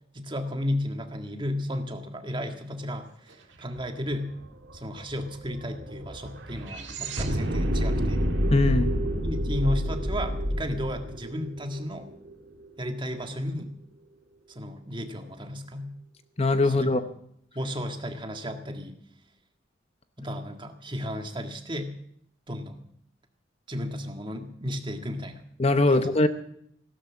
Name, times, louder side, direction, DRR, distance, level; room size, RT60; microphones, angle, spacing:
voice 1, 0.1-4.3 4.7-8.2 9.2-12.1 12.8-13.7 14.5-15.9 16.6-17.0 17.5-19.0 20.2-22.0 22.5-22.9 23.7-25.4 25.9-26.1, left 1 dB, 25° right, 5 dB, 1.7 m, -33 dB
sound 1, 3.8-3.9 4.1-12.3, equal, 75° right, 1.9 m, -29 dB
voice 2, 8.5-8.9 16.4-17.0 25.6-26.3, left 2 dB, 35° left, 10 dB, 0.8 m, -21 dB
16.0 x 12.5 x 7.2 m, 0.70 s
head